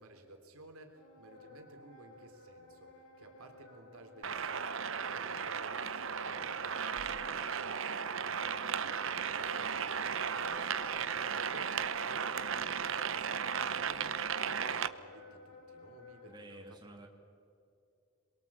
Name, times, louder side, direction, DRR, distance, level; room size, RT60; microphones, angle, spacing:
voice 1, 0.0-16.8, right 2 dB, 90° right, 4 dB, 3.7 m, -56 dB
Wind instrument woodwind instrument, 0.9-16.4, left 2 dB, 75° left, 5.5 m, -54 dB
sound 1, 4.2-14.9, right 7 dB, 65° right, 0.9 m, -35 dB
voice 2, 16.3-17.1, right 2 dB, 20° right, 2 dB, 2.5 m, -51 dB
27.0 x 22.5 x 8.8 m, 2.5 s
head